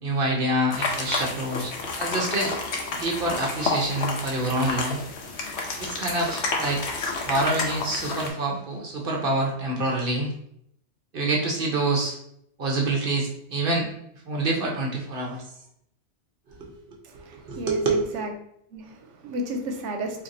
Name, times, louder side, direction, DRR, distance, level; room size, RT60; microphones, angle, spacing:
voice 1, 0.0-1.7 2.0-2.5 2.9-5.0 5.8-6.9 7.2-10.3 11.1-12.2 12.6-13.9 14.3-15.4 16.6-16.7 17.5-18.1, right 2 dB, 50° right, -1 dB, 0.9 m, -26 dB
sound 1, 0.7-8.3, left 3 dB, 70° left, 0.9 m, -30 dB
voice 2, 17.0-18.3 18.7-20.2, right 1 dB, 80° right, 4 dB, 1.0 m, -33 dB
4.5 x 2.6 x 2.6 m, 0.72 s
omnidirectional pair, 1.2 m